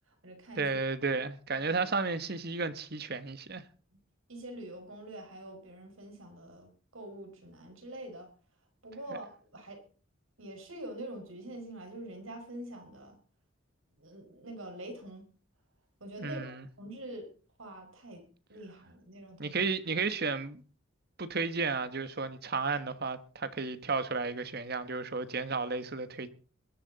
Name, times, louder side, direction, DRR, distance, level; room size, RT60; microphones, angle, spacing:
voice 1, 0.0-0.8 1.6-1.7 4.3-8.3 8.8-9.8 10.4-13.2 14.0-15.3 16.0-17.3 17.6-18.2 18.5-19.6, right 1 dB, 85° right, 5.2 m, -45 dB
voice 2, 0.6-3.6 16.2-16.7 19.4-20.6 21.2-26.3, right 4 dB, 50° right, 1.3 m, -33 dB
21.5 x 11.5 x 4.1 m
head